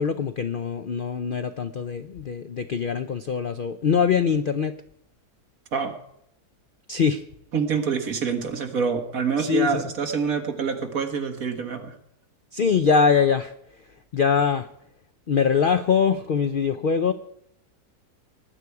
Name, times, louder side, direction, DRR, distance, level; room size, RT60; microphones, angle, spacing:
voice 1, 0.0-4.8 6.9-7.2 9.4-9.8 12.5-13.5 14.1-14.7 15.3-17.1, left 6 dB, 85° left, 10 dB, 0.4 m, -23 dB
voice 2, 7.5-11.9, right 6 dB, 60° right, 5 dB, 2.0 m, -26 dB
19.5 x 9.7 x 4.7 m, 0.77 s
omnidirectional pair, 1.7 m